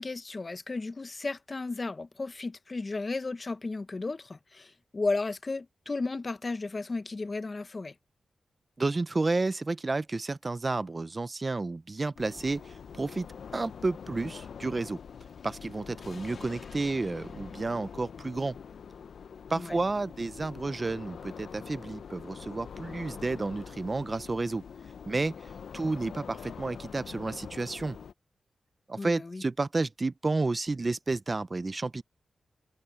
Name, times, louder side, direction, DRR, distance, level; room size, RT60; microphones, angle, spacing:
voice 1, 0.0-7.9 19.5-19.8 29.0-29.4, left 3 dB, 40° left, 1.0 m, -34 dB
voice 2, 8.8-13.3 13.5-15.0 15.4-18.6 19.5-24.6 25.1-25.3 25.7-28.0 28.9-32.0, right 3 dB, 35° right, 0.7 m, -31 dB
sound 1, 12.2-28.1, left 7 dB, 85° left, 0.7 m, -45 dB
sound 2, 14.0-18.8, left 5 dB, 65° left, 2.4 m, -55 dB
cardioid pair, 75°, 0 cm